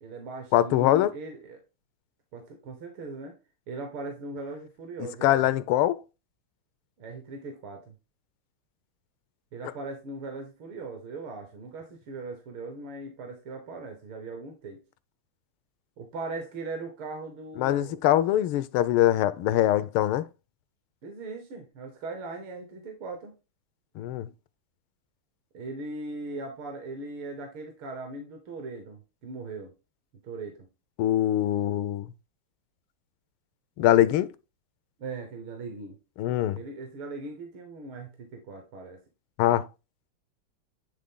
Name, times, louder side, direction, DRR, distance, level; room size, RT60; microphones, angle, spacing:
voice 1, 0.0-1.6 2.3-3.4 3.7-5.5 7.0-8.0 9.5-14.8 16.0-18.0 21.0-23.3 25.5-29.7 30.2-30.5 35.0-36.0 36.5-39.0, right 3 dB, 70° right, 2.0 m, -39 dB
voice 2, 0.5-1.1 5.0-6.0 17.6-20.3 24.0-24.3 31.0-32.1 33.8-34.3 36.2-36.6 39.4-39.7, left 13 dB, 80° left, 1.4 m, -23 dB
9.8 x 3.7 x 3.8 m
omnidirectional pair, 2.4 m